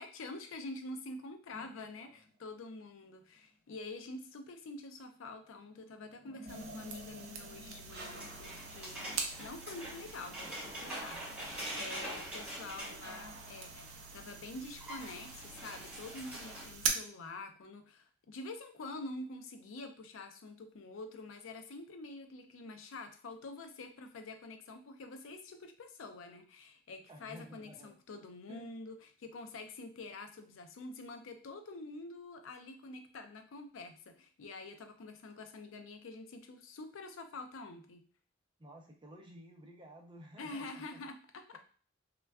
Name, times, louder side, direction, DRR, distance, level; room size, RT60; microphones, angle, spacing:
voice 1, 0.0-11.2 11.8-38.0 40.4-41.6, left 2 dB, 80° left, 7 dB, 0.4 m, -47 dB
sound 1, 1.5-2.8 5.3-10.1 13.0-15.4, equal, 50° right, 0.8 m, -53 dB
sound 2, 6.5-16.9, right 6 dB, 80° right, 0.5 m, -44 dB
sound 3, 8.0-13.9 14.3-14.4 14.6-16.7, right 1 dB, 5° right, 1.2 m, -44 dB
voice 2, 27.1-28.0 28.5-28.7 38.6-41.0, equal, 25° right, 2 dB, 0.5 m, -54 dB
3.3 x 2.2 x 2.3 m, 0.42 s
head